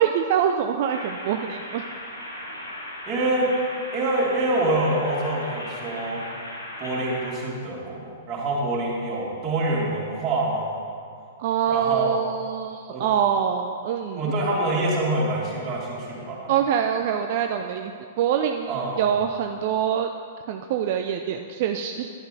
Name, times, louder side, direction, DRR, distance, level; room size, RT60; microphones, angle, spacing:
voice 1, 0.0-1.8 11.4-14.3 16.5-20.1 20.5-22.1, right 8 dB, 45° right, 5 dB, 0.5 m, -25 dB
sound 1, 0.9-7.3, left 1 dB, 80° left, 2.3 m, -37 dB
voice 2, 3.0-3.5 3.9-6.2 6.8-10.8 11.7-12.1 12.9-13.0 14.1-16.5 18.7-19.2, right 2 dB, 25° right, -5 dB, 3.0 m, -26 dB
12.0 x 11.0 x 3.9 m, 2.3 s
figure-of-eight pair, 105°, 0 cm